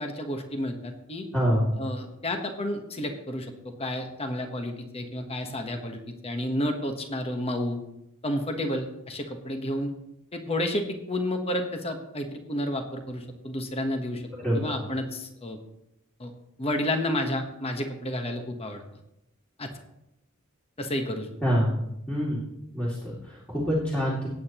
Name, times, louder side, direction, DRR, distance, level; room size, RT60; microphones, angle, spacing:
voice 1, 0.0-1.2 1.8-7.8 8.2-9.9 10.3-14.2 14.5-15.6 16.2-16.3 16.6-18.8 19.6-19.7 20.8-21.3, left 1 dB, 25° left, 5 dB, 1.2 m, -31 dB
voice 2, 1.3-1.7 14.4-14.7 21.4-21.8 22.1-22.4 22.7-24.3, equal, 5° left, -8 dB, 2.5 m, -26 dB
18.0 x 8.9 x 3.0 m, 0.84 s
head